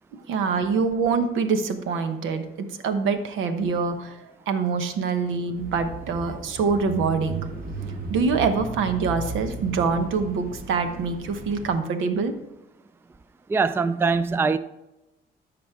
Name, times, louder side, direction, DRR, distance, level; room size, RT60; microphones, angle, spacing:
voice 1, 0.3-7.5 8.1-12.4, right 5 dB, 85° right, 8 dB, 1.0 m, -25 dB
Bicycle / Mechanisms, 5.6-11.7, right 3 dB, 45° right, 1.6 m, -35 dB
voice 2, 13.5-14.6, right 4 dB, 10° right, 14 dB, 0.3 m, -22 dB
13.0 x 5.1 x 3.6 m, 0.94 s
cardioid pair, 90°, 20 cm